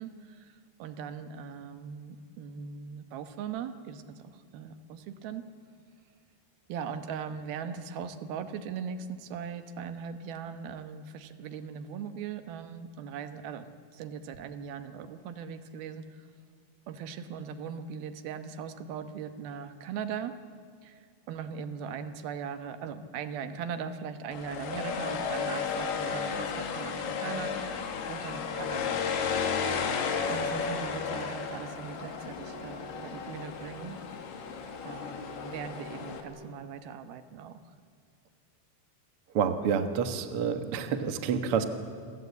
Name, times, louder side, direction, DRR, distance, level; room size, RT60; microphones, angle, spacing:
voice 1, 0.0-5.4 6.7-16.2 16.9-20.3 20.8-27.8 28.1-29.0 30.3-34.0 34.8-37.7, right 7 dB, 75° right, 9 dB, 2.9 m, -39 dB
sound 1, 24.3-36.2, left 6 dB, 90° left, 4.1 m, -33 dB
voice 2, 39.3-41.7, right 7 dB, 55° right, 8 dB, 1.6 m, -28 dB
29.0 x 23.0 x 8.3 m, 2.2 s
omnidirectional pair, 4.5 m